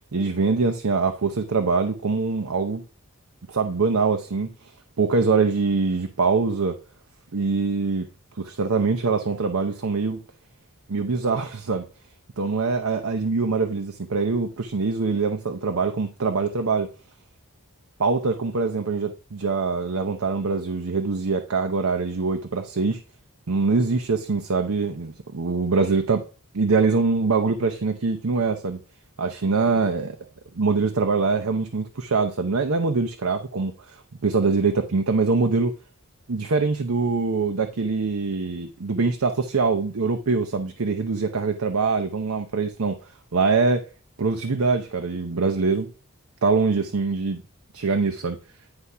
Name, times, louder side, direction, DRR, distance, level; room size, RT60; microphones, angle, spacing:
voice 1, 0.1-2.8 3.5-4.5 5.0-6.8 7.3-8.1 8.4-10.2 10.9-11.9 12.4-16.9 18.0-23.0 23.5-26.2 26.5-28.8 29.2-30.2 30.6-35.7 36.3-43.0 43.3-43.9 44.2-45.9 46.4-47.4 47.7-48.4, right 4 dB, 75° right, 0.7 m, -23 dB
9.8 x 3.5 x 5.5 m
head